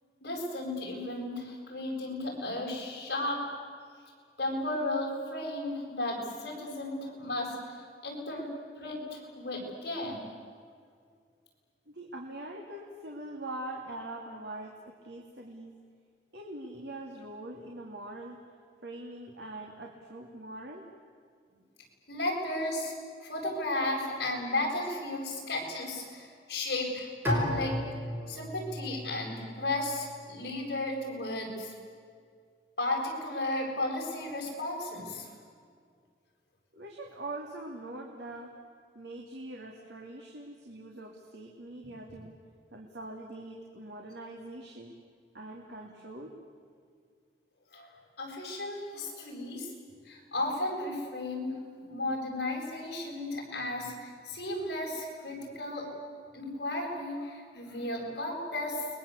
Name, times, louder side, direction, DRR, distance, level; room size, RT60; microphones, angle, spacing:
voice 1, 0.2-3.4 4.4-8.5 8.8-10.2 22.1-22.9 23.2-27.7 28.2-31.7 32.8-35.3 47.7-47.9 48.2-49.7 50.0-55.9 56.3-58.9, left 2 dB, 60° left, 0 dB, 8.0 m, -34 dB
voice 2, 11.9-15.8 16.3-18.4 18.8-20.8 36.7-38.6 38.9-42.4 42.7-44.9 45.3-46.4, right 1 dB, 70° right, 0 dB, 2.8 m, -43 dB
Bowed string instrument, 27.2-30.3, equal, 10° right, 5.7 m, -35 dB
29.5 x 22.0 x 8.5 m, 2.1 s
head